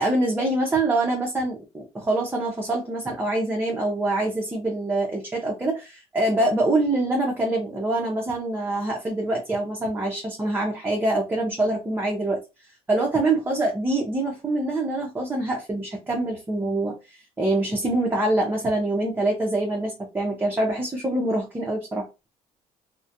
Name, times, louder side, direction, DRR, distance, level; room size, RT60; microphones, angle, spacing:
voice 1, 0.0-12.4 12.9-22.1, right 2 dB, 15° right, -1 dB, 0.6 m, -25 dB
2.3 x 2.1 x 2.7 m, 0.27 s
cardioid pair, 120°, 13 cm